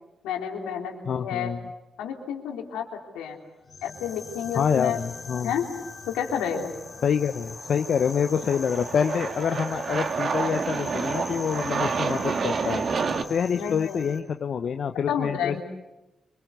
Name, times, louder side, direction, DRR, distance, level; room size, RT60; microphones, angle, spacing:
voice 1, 0.2-1.5 2.0-3.4 3.8-5.0 5.4-5.7 6.1-6.7 13.5-14.0 15.1-15.6, left 8 dB, 85° left, 2 dB, 3.3 m, -30 dB
voice 2, 1.1-1.7 4.5-5.5 7.0-12.8 13.3-15.6, left 7 dB, 65° left, 8 dB, 1.0 m, -26 dB
sound 1, 3.6-14.2, left 4 dB, 45° left, 3.3 m, -43 dB
Aircraft, 7.5-13.2, right 5 dB, 60° right, 1.9 m, -29 dB
25.5 x 25.0 x 8.1 m, 1.0 s
supercardioid pair, 45°, 0 cm